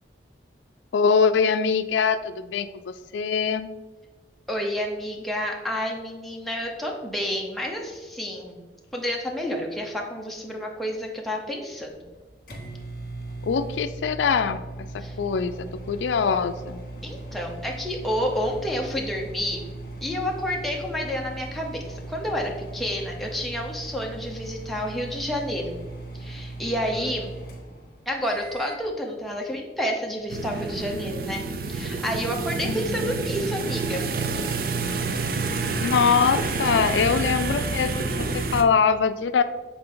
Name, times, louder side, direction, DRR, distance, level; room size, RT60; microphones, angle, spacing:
voice 1, 0.9-3.7 13.4-14.6 15.2-16.8 32.6-33.1 35.8-39.4, left 6 dB, 85° left, 11 dB, 0.4 m, -23 dB
voice 2, 4.5-8.6 8.9-12.0 15.0-15.2 17.0-19.6 20.0-25.8 26.1-27.3 28.1-31.4 31.7-34.0, equal, ahead, -1 dB, 0.8 m, -29 dB
sound 1, 12.0-28.9, right 2 dB, 50° left, 1.6 m, -38 dB
sound 2, 30.3-38.6, right 3 dB, 50° right, 0.5 m, -28 dB
7.8 x 4.1 x 3.8 m, 1.2 s
head